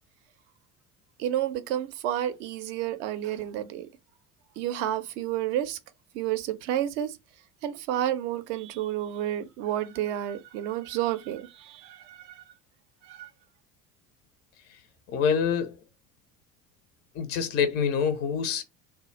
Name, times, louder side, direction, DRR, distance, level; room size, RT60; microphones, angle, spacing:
voice 1, 1.2-3.9 4.6-5.8 6.1-7.2 7.6-12.4 13.0-13.3, right 12 dB, 55° right, 0.5 m, -30 dB
voice 2, 15.1-15.8 17.2-18.6, left 7 dB, 25° left, 0.4 m, -26 dB
2.1 x 2.0 x 3.0 m
figure-of-eight pair, 65°, 45 cm